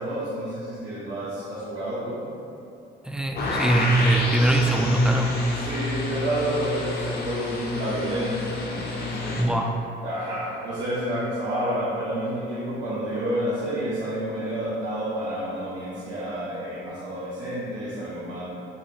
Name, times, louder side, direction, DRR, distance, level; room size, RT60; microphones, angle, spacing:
voice 1, 0.0-2.2 5.5-9.4 10.0-18.4, right 1 dB, 65° right, -10 dB, 0.9 m, -29 dB
voice 2, 3.1-5.5 9.4-9.7, right 1 dB, 5° right, 2 dB, 0.3 m, -22 dB
sound 1, 3.4-9.4, left 3 dB, 50° left, 0.7 m, -29 dB
5.7 x 2.5 x 2.9 m, 2.7 s
cardioid pair, 90°, 20 cm